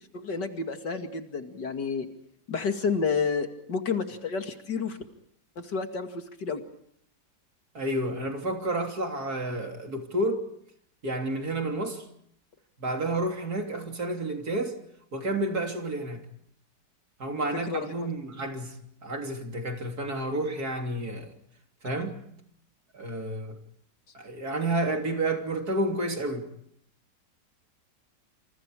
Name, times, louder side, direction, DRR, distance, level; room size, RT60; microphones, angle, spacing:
voice 1, 0.1-2.1 2.5-5.0 5.6-6.6 17.3-17.9, left 5 dB, 65° left, 2.9 m, -30 dB
voice 2, 7.7-10.5 11.0-12.1 12.8-14.8 15.1-16.2 17.2-18.8 19.0-21.3 21.8-22.2 22.9-23.6 24.1-26.5, right 1 dB, 55° right, 3.7 m, -30 dB
28.5 x 28.0 x 4.9 m
omnidirectional pair, 2.0 m